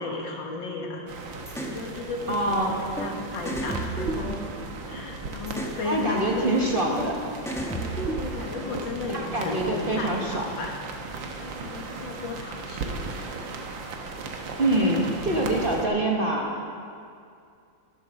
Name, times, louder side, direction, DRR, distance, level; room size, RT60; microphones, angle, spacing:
voice 1, 0.0-4.5 4.8-6.7 8.1-10.8 11.3-13.0, left 3 dB, 80° left, 1 dB, 2.2 m, -34 dB
sound 1, 1.1-15.9, right 3 dB, 80° right, 1.9 m, -37 dB
sound 2, 1.5-1.8 3.0-3.1 3.5-4.9 5.5-5.8 7.0-7.1 7.5-8.6, right 1 dB, ahead, 1.2 m, -32 dB
voice 2, 2.3-2.7 5.8-7.2 9.1-10.5 14.6-16.5, right 1 dB, 35° right, -1 dB, 1.2 m, -25 dB
12.0 x 10.5 x 6.3 m, 2.4 s
omnidirectional pair, 2.0 m